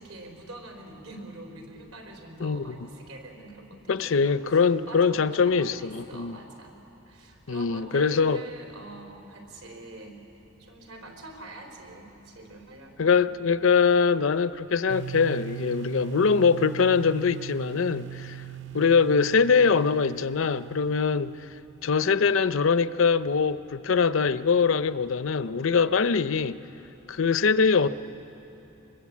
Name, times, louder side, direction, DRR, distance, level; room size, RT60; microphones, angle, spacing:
voice 1, 0.0-4.6 4.9-6.8 7.1-10.2 10.6-13.2, right 1 dB, 75° right, 3.7 m, -44 dB
voice 2, 2.4-2.7 3.9-6.3 7.5-8.4 13.0-18.4 18.7-21.4 21.8-26.6 27.1-27.9, left 5 dB, 65° left, 0.6 m, -23 dB
sound 1, 14.9-21.7, right 12 dB, 60° right, 0.4 m, -40 dB
24.0 x 21.0 x 8.4 m
head